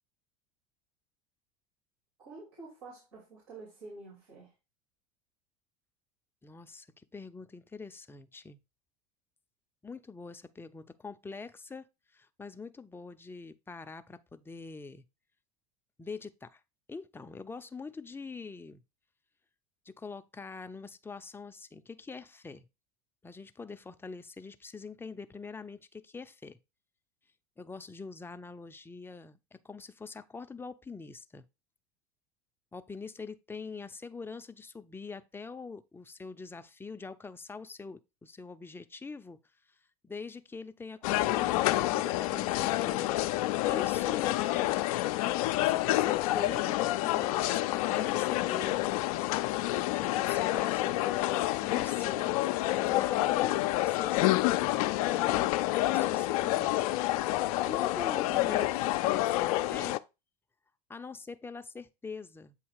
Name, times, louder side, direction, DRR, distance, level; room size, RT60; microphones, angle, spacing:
voice 1, 2.2-4.5, right 3 dB, 90° right, 3.0 m, -48 dB
voice 2, 6.4-8.6 9.8-11.9 12.1-15.0 16.0-16.6 16.9-18.8 19.9-22.7 23.2-26.6 27.6-31.4 32.7-39.4 40.0-43.2 43.6-44.7 45.5-48.8 49.7-52.3 52.6-56.8 57.7-60.0 60.9-62.6, left 4 dB, 10° left, 0.5 m, -44 dB
sound 1, 41.0-60.0, left 16 dB, 70° left, 0.4 m, -28 dB
8.1 x 2.8 x 4.7 m
hypercardioid pair, 90°, 19 cm